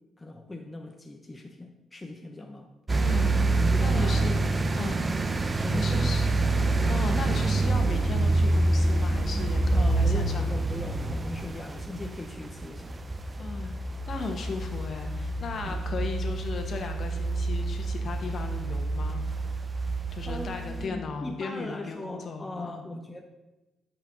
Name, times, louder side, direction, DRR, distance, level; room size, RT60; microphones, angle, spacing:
voice 1, 0.2-2.7 3.7-4.3 5.1-6.2 9.8-13.0 15.6-16.1 20.2-23.2, left 2 dB, 15° left, 3 dB, 0.8 m, -40 dB
sound 1, 2.9-20.9, right 2 dB, 25° right, 0.6 m, -27 dB
voice 2, 3.0-3.4 3.8-4.5 4.8-5.1 5.7-6.3 6.9-10.5 13.4-13.8 14.1-19.2 20.1-22.8, left 4 dB, 50° left, 4 dB, 1.5 m, -36 dB
13.5 x 5.8 x 3.8 m, 1.1 s
cardioid pair, 90°, 0 cm